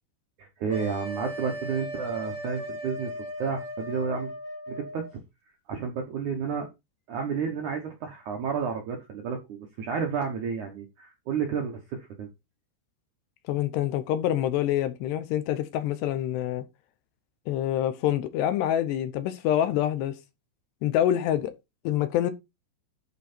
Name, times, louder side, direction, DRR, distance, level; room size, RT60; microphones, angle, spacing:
voice 1, 0.4-3.1 3.4-4.3 4.7-5.0 5.7-6.7 7.1-12.3, right 6 dB, 70° right, 1.9 m, -31 dB
sound 1, 0.7-5.1, equal, 15° left, 2.2 m, -37 dB
voice 2, 13.5-16.6 17.5-20.2 20.8-21.5 21.8-22.3, left 11 dB, 75° left, 2.9 m, -26 dB
11.0 x 4.6 x 4.3 m
omnidirectional pair, 5.2 m